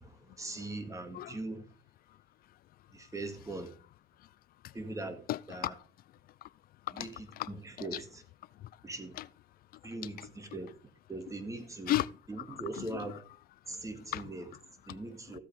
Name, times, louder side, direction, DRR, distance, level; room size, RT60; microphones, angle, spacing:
voice 1, 0.0-1.6 2.9-3.7 4.7-5.7 7.0-7.1 7.5-8.2 8.8-9.2 9.8-10.7 11.1-12.0 12.3-13.2 13.7-14.4 14.9-15.4, right 2 dB, 20° right, 2.1 m, -41 dB
voice 2, 5.3-5.9 6.4-6.5 6.9-7.5 7.8-8.0 8.6-8.8 9.1-9.3 10.0-10.3 11.9-13.2 14.1-15.0 15.3-15.4, left 14 dB, 60° left, 0.4 m, -37 dB
14.5 x 8.1 x 3.6 m
cardioid pair, 110°, 17 cm